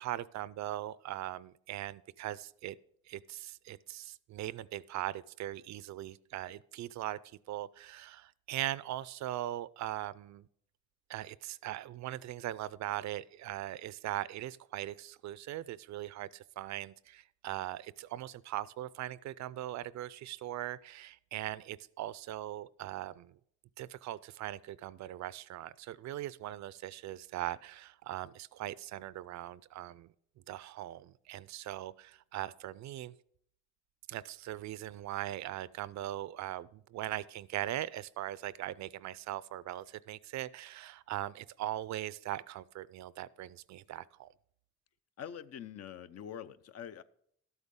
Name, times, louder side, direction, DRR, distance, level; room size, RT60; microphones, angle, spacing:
voice 1, 0.0-2.8 3.1-7.2 7.5-10.5 11.1-23.4 23.8-30.1 30.5-33.1 34.1-44.3, right 13 dB, 65° right, 19 dB, 0.4 m, -40 dB
voice 2, 45.2-47.0, left 9 dB, 55° left, 14 dB, 0.6 m, -44 dB
12.5 x 8.1 x 3.7 m, 0.67 s
cardioid pair, 90°, 30 cm